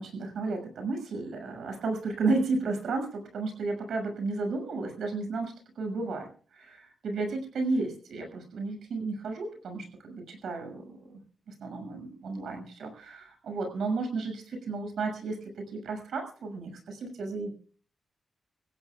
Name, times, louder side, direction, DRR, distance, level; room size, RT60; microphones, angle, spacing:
voice 1, 0.0-11.2 11.6-17.5, right 3 dB, 85° right, 4 dB, 6.4 m, -33 dB
27.0 x 15.5 x 2.4 m, 0.41 s
wide cardioid pair, 135°, 0 cm